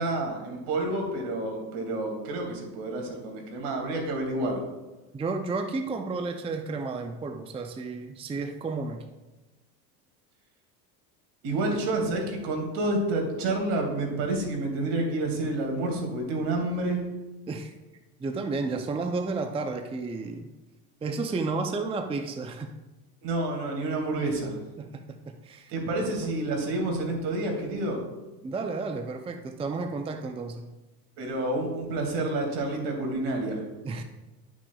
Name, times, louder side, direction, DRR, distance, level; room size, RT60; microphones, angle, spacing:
voice 1, 0.0-4.6 11.4-17.1 23.2-24.6 25.7-28.0 31.2-33.6, right 2 dB, 70° right, 2 dB, 2.4 m, -29 dB
voice 2, 5.1-9.1 17.5-17.7 18.2-20.5 21.0-22.7 24.8-25.2 25.4-25.7 26.0-26.3 28.4-30.6 33.8-34.0, right 3 dB, 15° right, 5 dB, 0.5 m, -32 dB
11.0 x 6.0 x 2.3 m, 1.1 s
supercardioid pair, 100°, 43 cm